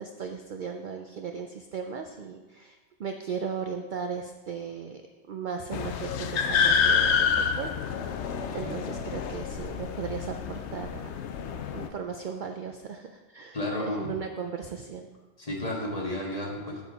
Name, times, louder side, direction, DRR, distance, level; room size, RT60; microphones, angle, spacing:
voice 1, 0.0-5.0 5.3-7.7 8.5-11.1 11.5-15.1, right 6 dB, 55° right, 5 dB, 0.5 m, -36 dB
sound 1, 5.7-11.9, left 6 dB, 75° left, 0.9 m, -28 dB
voice 2, 13.5-14.1 15.4-16.8, left 1 dB, 30° left, -2 dB, 1.7 m, -32 dB
8.5 x 7.2 x 4.0 m, 1.3 s
omnidirectional pair, 1.2 m